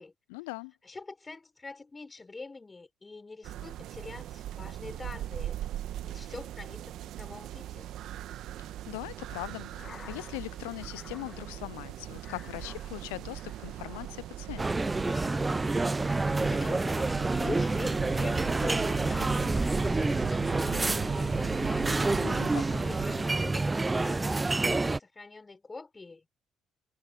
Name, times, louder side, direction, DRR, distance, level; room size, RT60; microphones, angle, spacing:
voice 1, 0.3-0.7 8.6-14.9 22.2-22.8, left 27 dB, 85° left, 0.3 m, -41 dB
voice 2, 0.8-5.6 6.0-7.9 16.4-22.2 22.8-26.3, left 3 dB, 25° left, 4.6 m, -44 dB
sound 1, 3.4-23.3, right 13 dB, 70° right, 1.2 m, -40 dB
sound 2, 9.6-18.7 19.1-20.2, left 6 dB, 45° left, 2.2 m, -52 dB
sound 3, 14.6-25.0, right 3 dB, 25° right, 0.5 m, -28 dB
hypercardioid pair, 50°, 0 cm